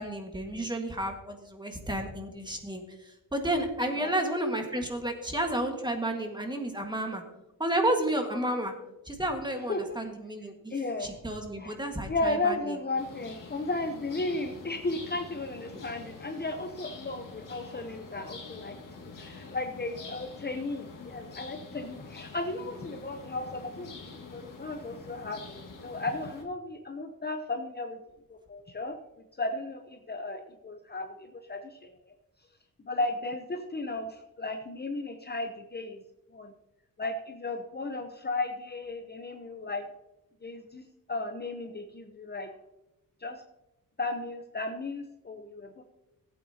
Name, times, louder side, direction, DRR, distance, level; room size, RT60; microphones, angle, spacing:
voice 1, 0.0-7.2 7.6-8.7 9.0-10.7 11.0-12.8 15.7-15.8, right 1 dB, 10° right, 4 dB, 1.7 m, -31 dB
voice 2, 10.7-11.1 11.6-11.8 12.1-23.9 24.2-28.0 28.5-29.0 29.4-31.9 32.8-36.0 36.3-36.5 37.0-39.8 40.4-40.8 41.1-42.5 43.2-43.4 44.0-45.8, left 2 dB, 30° left, 5 dB, 0.8 m, -34 dB
sound 1, 13.0-26.4, left 3 dB, 60° left, 1.9 m, -46 dB
16.0 x 8.6 x 2.8 m, 0.93 s
wide cardioid pair, 110°, 35 cm